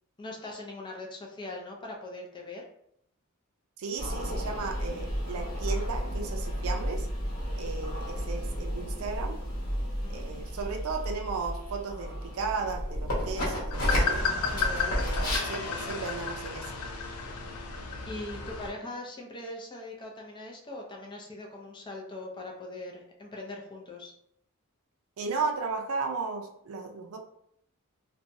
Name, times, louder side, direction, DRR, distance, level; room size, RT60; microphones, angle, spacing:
voice 1, 0.2-2.7 10.0-10.3 14.1-15.0 18.1-24.1, left 2 dB, 20° left, 0 dB, 0.4 m, -41 dB
voice 2, 3.8-7.1 7.6-9.4 10.1-14.3 15.0-16.7 25.2-27.2, right 4 dB, 70° right, 4 dB, 0.4 m, -35 dB
sound 1, 4.0-15.4, equal, 70° left, 1.0 m, -32 dB
sound 2, 13.7-18.7, left 4 dB, 90° left, 0.5 m, -33 dB
2.8 x 2.2 x 2.6 m, 0.72 s
head